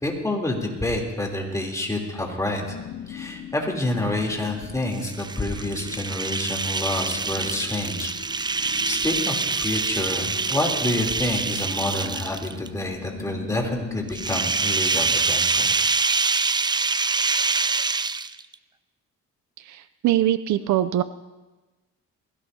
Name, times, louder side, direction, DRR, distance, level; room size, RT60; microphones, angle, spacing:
voice 1, 0.0-2.6 3.1-8.1 8.6-15.7, left 1 dB, 10° left, -1 dB, 3.3 m, -28 dB
sound 1, 2.5-14.5, left 9 dB, 55° left, 0.8 m, -41 dB
sound 2, 4.9-12.7 14.1-18.5, right 4 dB, 15° right, 0.4 m, -25 dB
voice 2, 19.6-21.0, right 13 dB, 70° right, 13 dB, 0.5 m, -23 dB
21.0 x 17.0 x 2.8 m, 1.2 s
cardioid pair, 90°, 30 cm